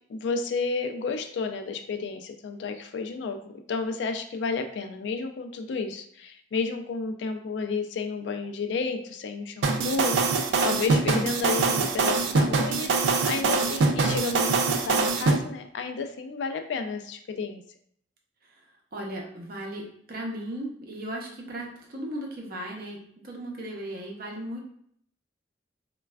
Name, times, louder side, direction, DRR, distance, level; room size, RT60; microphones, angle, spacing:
voice 1, 0.1-17.6, left 4 dB, 70° left, 7 dB, 0.3 m, -31 dB
sound 1, 9.6-15.4, right 4 dB, 90° right, 0.3 m, -23 dB
voice 2, 18.4-24.6, right 1 dB, 55° right, -1 dB, 0.6 m, -37 dB
3.1 x 2.2 x 2.2 m, 0.66 s
head